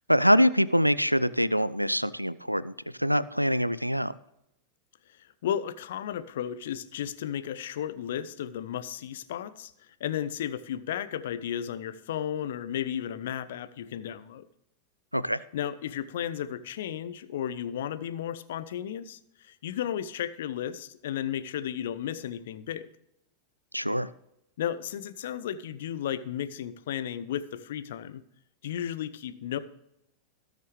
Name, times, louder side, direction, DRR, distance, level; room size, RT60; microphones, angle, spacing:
voice 1, 0.1-2.7 3.0-4.1 15.1-15.4 23.7-24.1, equal, 90° right, 18 dB, 0.4 m, -24 dB
voice 2, 5.4-9.7 10.0-14.5 15.5-22.9 24.6-28.2 28.6-29.6, left 10 dB, 60° left, 13 dB, 0.8 m, -34 dB
18.0 x 6.7 x 3.3 m, 0.81 s
figure-of-eight pair, 90°, 0 cm